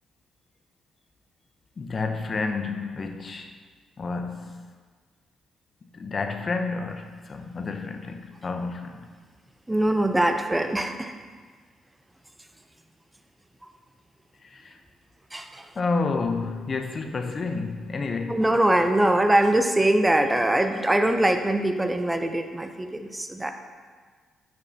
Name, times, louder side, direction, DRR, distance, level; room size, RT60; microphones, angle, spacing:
voice 1, 1.8-3.5 4.0-4.6 5.9-9.1 14.4-14.8 15.8-18.4, left 4 dB, 45° left, 5 dB, 0.7 m, -30 dB
voice 2, 9.7-11.1 15.3-15.7 18.3-23.5, right 1 dB, 15° right, 7 dB, 0.5 m, -22 dB
8.9 x 5.3 x 2.8 m, 1.5 s
hypercardioid pair, 50°, 0 cm